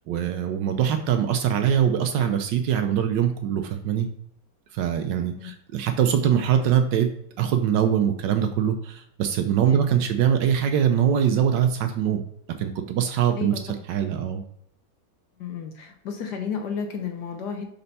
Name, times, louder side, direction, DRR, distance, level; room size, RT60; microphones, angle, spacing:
voice 1, 0.1-4.1 4.7-7.1 7.4-12.2 12.6-14.4, right 9 dB, 75° right, 6 dB, 1.1 m, -23 dB
voice 2, 15.4-17.6, left 6 dB, 70° left, 5 dB, 1.1 m, -32 dB
5.5 x 4.3 x 4.0 m, 0.70 s
omnidirectional pair, 2.2 m